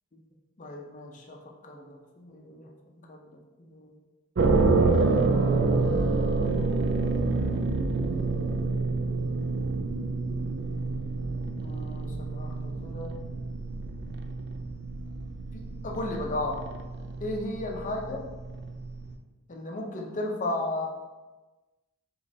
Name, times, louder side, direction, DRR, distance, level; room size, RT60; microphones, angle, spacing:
voice 1, 0.6-1.4 1.6-2.7 3.1-3.2 3.6-3.9 11.6-13.2 15.5-16.6 17.2-18.2 19.5-20.9, left 2 dB, 40° left, 1 dB, 0.6 m, -35 dB
sound 1, 4.4-19.2, right 3 dB, 60° right, 0.4 m, -28 dB
5.1 x 3.1 x 2.7 m, 1.2 s
head